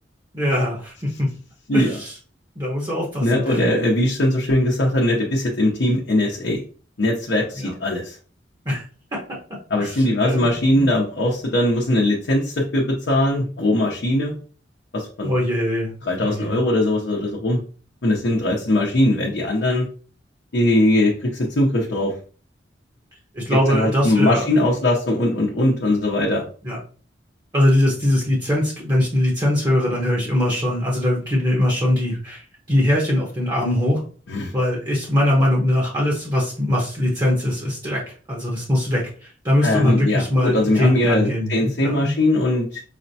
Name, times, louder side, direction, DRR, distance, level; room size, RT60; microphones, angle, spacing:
voice 1, 0.3-1.3 1.7-2.1 2.6-3.6 7.6-7.7 8.6-8.8 9.1-9.2 9.8-10.9 15.2-15.9 16.2-16.6 23.3-24.4 26.6-26.8 27.5-34.0 34.5-38.0 38.3-42.1, left 1 dB, 25° right, -3 dB, 0.9 m, -21 dB
voice 2, 3.2-6.6 7.0-8.2 9.7-14.3 14.9-15.3 16.0-17.6 18.0-19.9 20.5-22.1 23.7-26.4 34.3-34.5 39.6-42.8, left 1 dB, 75° left, -2 dB, 0.7 m, -20 dB
4.9 x 2.1 x 2.7 m, 0.40 s
head